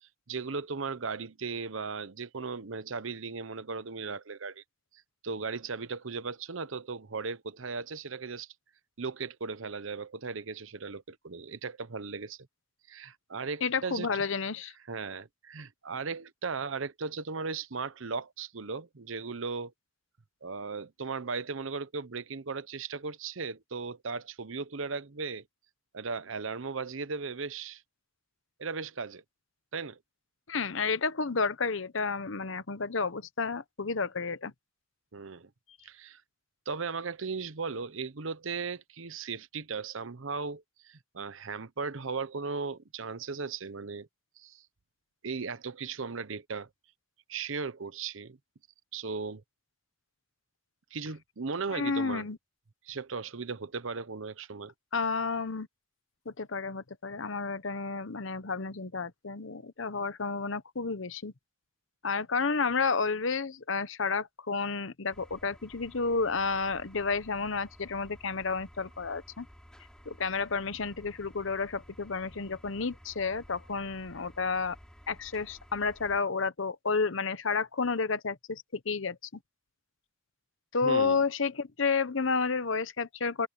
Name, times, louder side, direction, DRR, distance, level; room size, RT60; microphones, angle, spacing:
voice 1, 0.0-4.6 5.2-8.5 9.0-12.4 12.9-14.1 14.9-19.7 20.4-25.4 25.9-27.8 28.6-29.2 29.7-30.0 35.1-35.5 35.8-36.2 36.7-44.1 44.4-44.6 45.2-46.7 47.3-48.4 48.9-49.4 50.9-52.3 52.9-54.7 80.8-81.2, right 4 dB, 75° right, 0.9 m, -37 dB
voice 2, 13.6-14.7 30.5-34.5 51.7-52.4 54.9-55.7 56.3-61.3 62.0-69.5 70.1-74.8 75.1-79.2 80.7-83.5, left 4 dB, 70° left, 1.0 m, -31 dB
sound 1, 65.1-76.2, equal, 5° left, 6.6 m, -54 dB
open air
head